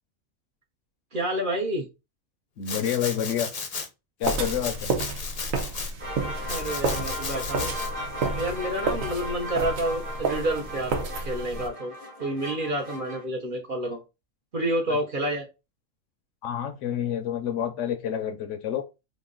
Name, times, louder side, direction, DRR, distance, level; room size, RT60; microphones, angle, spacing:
voice 1, 1.1-1.9 6.4-7.7 8.3-11.9 12.2-14.0 14.5-15.5, right 1 dB, 45° right, 0.8 m, -29 dB
voice 2, 2.6-3.5 4.2-4.9 16.4-18.8, left 9 dB, 70° left, 0.9 m, -28 dB
Domestic sounds home sounds, 2.6-3.9 4.2-5.9 6.5-7.9, left 4 dB, 45° left, 0.5 m, -35 dB
sound 1, 4.2-11.7, right 3 dB, 85° right, 1.2 m, -31 dB
sound 2, 6.0-13.2, equal, 30° right, 1.1 m, -37 dB
3.1 x 2.6 x 3.7 m
omnidirectional pair, 1.4 m